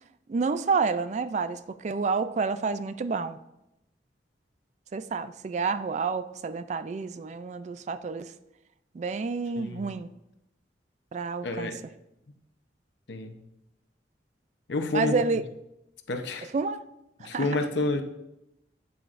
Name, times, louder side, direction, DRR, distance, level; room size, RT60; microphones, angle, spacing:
voice 1, 0.3-3.4 4.9-8.3 8.9-10.1 11.1-11.7 14.9-15.4 16.5-16.8 17.2-17.5, right 4 dB, 40° right, 12 dB, 0.3 m, -29 dB
voice 2, 9.6-9.9 11.4-11.7 13.1-13.4 14.7-15.2 16.1-16.5 17.2-18.0, left 2 dB, 75° left, 6 dB, 0.8 m, -29 dB
9.1 x 7.7 x 2.5 m, 0.87 s
head